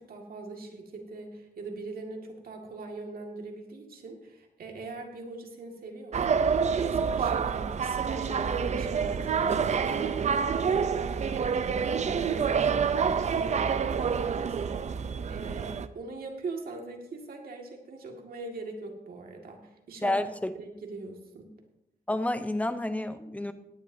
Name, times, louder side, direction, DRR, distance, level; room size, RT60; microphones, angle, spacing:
voice 1, 0.0-20.2 20.6-21.5, right 3 dB, 75° right, 2 dB, 1.9 m, -41 dB
sound 1, 6.1-15.9, right 6 dB, 50° right, 0.5 m, -27 dB
voice 2, 20.0-20.5 22.1-23.5, left 1 dB, 10° left, 10 dB, 0.7 m, -29 dB
17.0 x 10.5 x 2.7 m, 0.91 s
wide cardioid pair, 130°, 15 cm